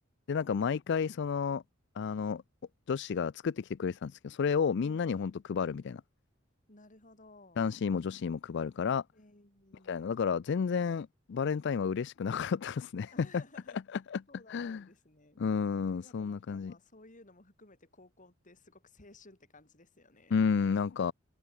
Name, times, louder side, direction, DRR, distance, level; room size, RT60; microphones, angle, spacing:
voice 1, 0.3-1.6 2.0-2.4 2.9-6.0 7.6-9.0 9.9-13.4 14.1-14.2 14.5-14.8 15.4-16.7 20.3-21.1, left 6 dB, 60° left, 0.4 m, -31 dB
voice 2, 4.8-5.5 6.7-7.7 9.1-10.1 13.1-13.8 14.3-15.4 15.8-20.3, left 2 dB, 40° left, 4.9 m, -57 dB
head